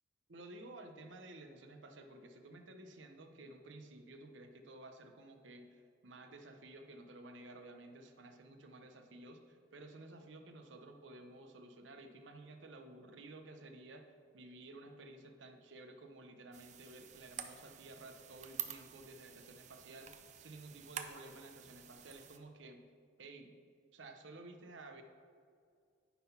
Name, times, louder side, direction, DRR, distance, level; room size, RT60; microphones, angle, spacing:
voice 1, 0.3-22.8 23.2-23.6 23.9-25.0, right 2 dB, 80° right, 5 dB, 0.8 m, -53 dB
sound 1, 16.5-22.4, right 9 dB, 40° right, 0.4 m, -48 dB
9.8 x 3.8 x 5.7 m, 2.2 s
head